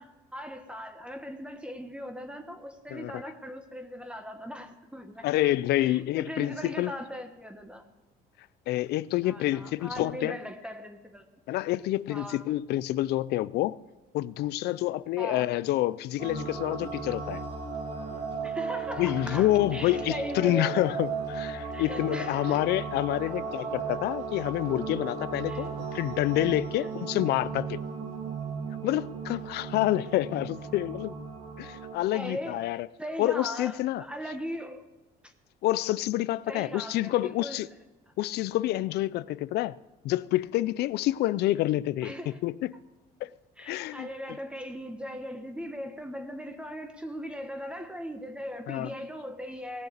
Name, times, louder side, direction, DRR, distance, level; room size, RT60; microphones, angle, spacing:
voice 1, 0.0-5.3 5.7-7.8 9.2-11.3 12.1-12.5 15.2-15.5 18.4-20.7 21.7-22.6 23.3-23.4 25.5-25.7 32.1-34.8 35.2-35.3 36.5-37.7 42.0-42.4 43.6-49.9, equal, 5° right, 1.3 m, -39 dB
voice 2, 2.9-3.2 5.2-6.9 8.7-10.4 11.5-13.8 14.1-17.4 19.0-27.8 28.8-31.2 31.6-32.9 33.2-34.4 35.6-37.7 38.2-39.8 40.0-42.7 43.2-43.3 43.6-44.4 48.7-48.9, left 15 dB, 75° left, 0.5 m, -28 dB
sound 1, 16.2-31.9, right 5 dB, 75° right, 3.8 m, -36 dB
18.0 x 6.6 x 8.4 m
cardioid pair, 110°, 17 cm